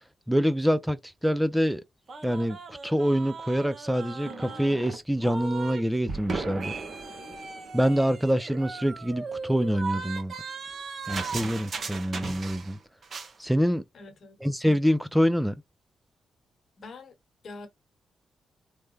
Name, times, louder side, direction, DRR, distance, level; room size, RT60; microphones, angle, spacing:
voice 1, 0.3-1.8 2.2-6.7 7.7-10.3 11.1-12.8 13.4-13.8 14.4-15.6, equal, 5° right, 0.4 m, -25 dB
sound 1, 2.1-5.8 6.1-12.8 13.0-13.3, right 4 dB, 55° right, 0.9 m, -37 dB
voice 2, 13.9-14.4 16.8-17.2 17.4-17.7, left 3 dB, 60° left, 1.1 m, -44 dB
3.2 x 2.1 x 3.2 m
supercardioid pair, 55°, 0 cm